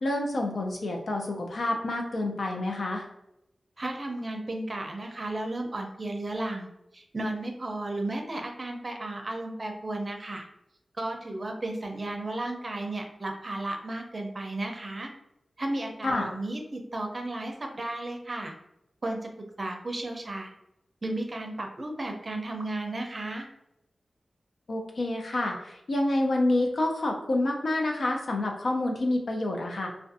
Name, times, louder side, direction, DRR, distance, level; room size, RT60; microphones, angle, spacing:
voice 1, 0.0-3.1 16.0-16.3 24.7-29.9, left 2 dB, 70° left, 2 dB, 0.5 m, -28 dB
voice 2, 3.8-6.7 6.9-10.5 11.0-15.1 15.6-18.5 19.0-20.5 21.0-23.5, right 2 dB, 45° right, 3 dB, 0.5 m, -34 dB
2.5 x 2.1 x 2.6 m, 0.84 s
cardioid pair, 45°, 0 cm